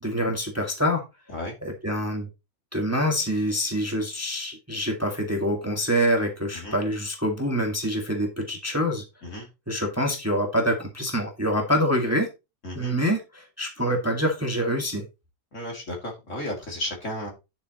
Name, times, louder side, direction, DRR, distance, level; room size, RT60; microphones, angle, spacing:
voice 1, 0.0-1.0 1.6-2.3 2.7-9.0 9.7-12.3 12.7-15.0, equal, 10° right, 1 dB, 1.9 m, -26 dB
voice 2, 12.6-12.9 15.5-17.3, left 1 dB, 50° left, 0 dB, 3.1 m, -33 dB
10.0 x 6.9 x 3.0 m, 0.26 s
omnidirectional pair, 1.7 m